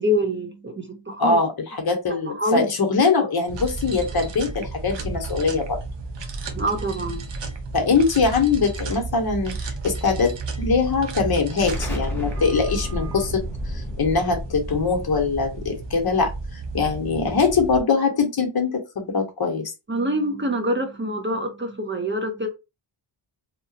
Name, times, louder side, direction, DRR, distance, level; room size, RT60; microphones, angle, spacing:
voice 1, 0.0-1.4 2.3-2.7 4.1-4.2 6.5-7.2 19.9-22.5, equal, 25° right, 4 dB, 0.5 m, -25 dB
voice 2, 1.2-5.8 7.7-13.4 13.7-19.7, left 4 dB, 50° left, 4 dB, 0.8 m, -22 dB
sound 1, 3.5-17.8, right 3 dB, 60° right, 0.7 m, -33 dB
Explosion, 11.7-17.1, equal, 5° left, 0.9 m, -33 dB
2.8 x 2.2 x 2.6 m, 0.26 s
wide cardioid pair, 110°, 50 cm